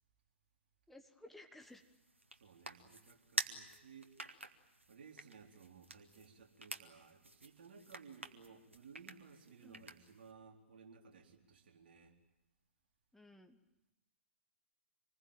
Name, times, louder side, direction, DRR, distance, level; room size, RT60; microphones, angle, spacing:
voice 1, 0.9-1.8 9.6-9.9 13.1-13.6, left 1 dB, 5° left, 5 dB, 1.4 m, -57 dB
sound 1, 1.6-10.3, right 1 dB, 80° right, 1.9 m, -48 dB
voice 2, 2.3-4.1 4.9-12.2, right 6 dB, 50° right, 2 dB, 3.9 m, -58 dB
26.5 x 20.5 x 8.9 m, 0.93 s
figure-of-eight pair, 115°, 7 cm